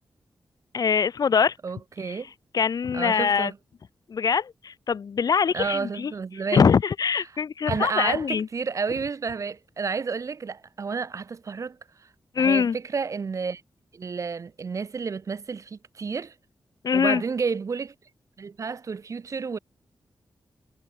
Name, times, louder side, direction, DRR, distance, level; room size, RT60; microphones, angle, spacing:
voice 1, 0.7-1.6 2.0-2.2 2.5-3.5 4.1-6.1 6.5-8.5 12.3-12.8 16.8-17.2, left 6 dB, 55° left, 0.5 m, -23 dB
voice 2, 1.6-2.3 2.9-3.6 5.5-6.7 7.7-11.8 12.4-13.6 13.9-16.3 16.9-17.9 18.4-19.6, right 5 dB, 45° right, 0.4 m, -30 dB
wide cardioid pair, 125°, 8 cm